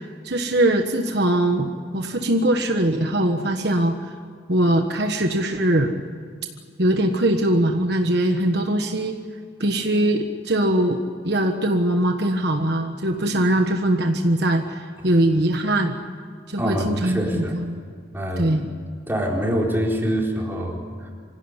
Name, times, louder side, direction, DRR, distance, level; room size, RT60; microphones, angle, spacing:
voice 1, 0.2-4.1 4.5-5.9 6.8-9.2 9.6-16.0 16.5-17.8 18.4-18.7, right 1 dB, 55° right, 4 dB, 1.4 m, -21 dB
voice 2, 16.6-17.6 18.1-18.6 19.1-21.1, equal, 10° right, -2 dB, 4.4 m, -25 dB
26.0 x 16.5 x 9.9 m, 2.1 s
head